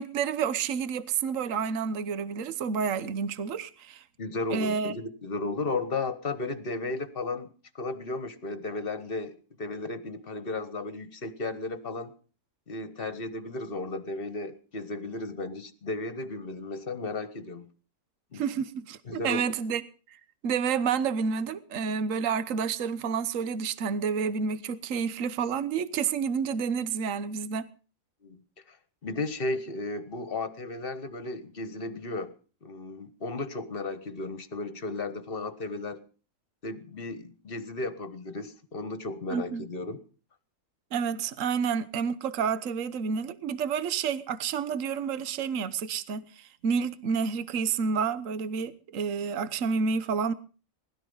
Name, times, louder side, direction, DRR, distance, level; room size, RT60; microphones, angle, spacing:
voice 1, 0.0-4.0 4.5-4.9 18.3-19.8 20.1-20.2 20.4-27.7 39.3-39.6 40.9-50.3, right 6 dB, 60° right, 1.3 m, -29 dB
voice 2, 4.2-7.5 7.7-12.1 12.7-17.7 18.3-18.4 19.0-19.4 28.2-28.4 28.7-28.8 29.0-32.3 32.6-36.0 36.6-40.0, left 3 dB, 40° left, 1.5 m, -34 dB
20.0 x 12.5 x 5.6 m
omnidirectional pair, 1.6 m